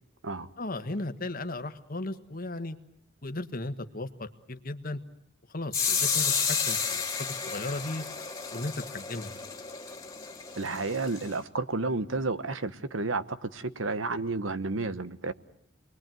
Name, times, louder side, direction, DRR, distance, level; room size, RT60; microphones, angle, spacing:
voice 1, 0.6-2.8 3.2-5.0 5.5-8.0 8.5-9.3, left 2 dB, 45° left, 8 dB, 1.5 m, -36 dB
sound 1, 5.7-11.4, left 6 dB, 15° left, 2.9 m, -31 dB
voice 2, 10.6-15.3, right 3 dB, 85° right, 13 dB, 1.2 m, -31 dB
29.0 x 21.5 x 9.2 m, 0.73 s
head